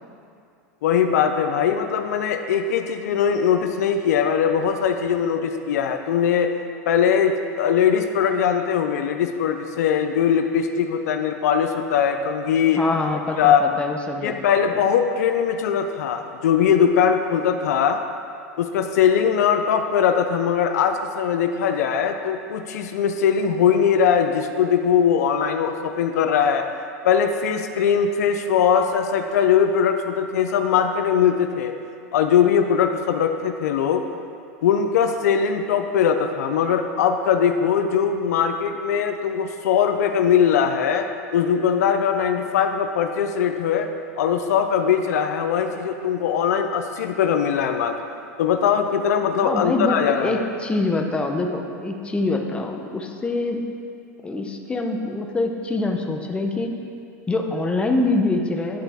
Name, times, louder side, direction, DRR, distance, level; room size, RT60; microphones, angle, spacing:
voice 1, 0.8-6.5 6.9-12.8 13.4-13.6 14.2-18.0 18.6-26.7 27.0-31.8 32.1-34.0 34.6-41.1 41.3-43.9 44.2-48.0 48.4-50.5, left 7 dB, 80° left, 7 dB, 0.4 m, -21 dB
voice 2, 12.8-14.4 14.7-14.8 49.4-53.6 54.2-56.7 57.3-58.8, left 2 dB, 10° left, 3 dB, 0.7 m, -25 dB
10.5 x 4.0 x 3.5 m, 2.4 s
hypercardioid pair, 110°, 9 cm